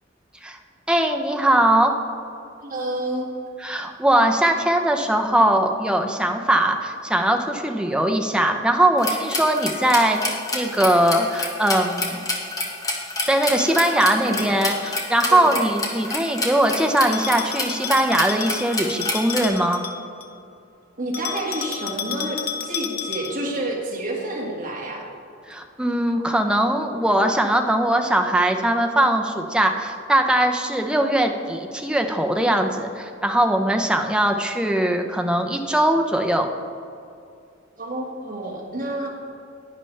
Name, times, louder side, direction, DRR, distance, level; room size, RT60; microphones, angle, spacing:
voice 1, 0.9-1.9 3.6-12.2 13.3-19.8 25.5-36.5, right 1 dB, 5° right, 3 dB, 0.6 m, -20 dB
voice 2, 2.6-3.3 14.2-14.6 15.3-15.7 21.0-25.1 37.8-39.1, right 1 dB, 45° right, -3 dB, 1.9 m, -29 dB
sound 1, 9.0-19.5, left 2 dB, 20° left, 1.2 m, -27 dB
Bell, 13.2-14.9 17.1-20.4 21.1-23.5, left 8 dB, 50° left, 0.7 m, -33 dB
11.0 x 9.7 x 3.3 m, 2.5 s
head